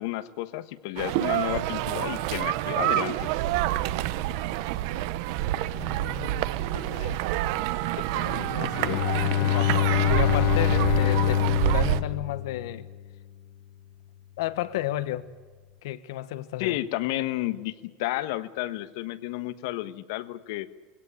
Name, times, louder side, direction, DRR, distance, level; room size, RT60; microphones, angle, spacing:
voice 1, 0.0-3.3 8.0-8.1 16.6-20.7, left 16 dB, 70° left, 1.2 m, -31 dB
sound 1, 1.0-12.0, right 14 dB, 60° right, 1.0 m, -27 dB
voice 2, 5.7-7.2 8.1-12.9 14.4-15.3 15.8-16.8, left 14 dB, 85° left, 1.2 m, -33 dB
Bowed string instrument, 8.7-13.0, left 12 dB, 45° left, 0.7 m, -25 dB
22.0 x 17.5 x 10.0 m
supercardioid pair, 165°, 2 cm